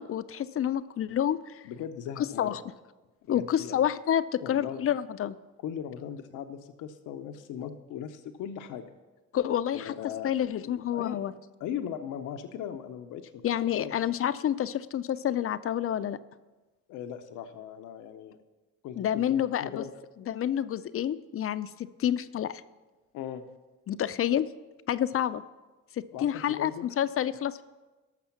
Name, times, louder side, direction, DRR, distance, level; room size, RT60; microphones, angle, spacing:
voice 1, 0.0-1.6 2.4-2.6 3.3-5.4 9.3-9.9 10.2-11.3 13.4-16.2 19.0-19.8 20.3-22.6 23.9-24.4 24.9-25.4 25.9-27.6, left 10 dB, 50° left, 14 dB, 0.5 m, -28 dB
voice 2, 1.6-2.6 3.3-3.9 4.4-4.8 5.6-8.8 9.7-10.3 10.8-11.2 11.6-13.4 13.8-13.9 16.9-18.4 18.8-19.9 23.1-23.4 26.1-26.9, left 9 dB, 85° left, 8 dB, 0.7 m, -38 dB
13.0 x 6.2 x 5.8 m, 1.2 s
cardioid pair, 90°, 30 cm